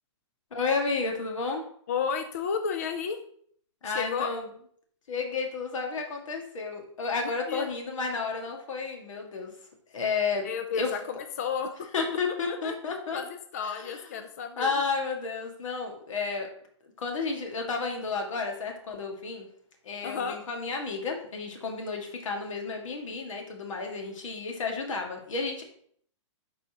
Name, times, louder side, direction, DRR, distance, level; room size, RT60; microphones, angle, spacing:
voice 1, 0.5-1.6 3.8-4.5 5.1-9.5 9.9-10.4 10.7-10.9 11.9-13.2 13.7-14.0 14.6-16.5 17.0-19.5 19.9-25.6, left 4 dB, 80° left, 2 dB, 1.9 m, -31 dB
voice 2, 1.9-3.2 3.8-4.3 7.5-7.7 10.4-11.9 12.5-14.7 20.0-20.4, left 6 dB, 30° left, 7 dB, 0.3 m, -32 dB
11.5 x 4.1 x 2.9 m, 0.63 s
hypercardioid pair, 180°, 16 cm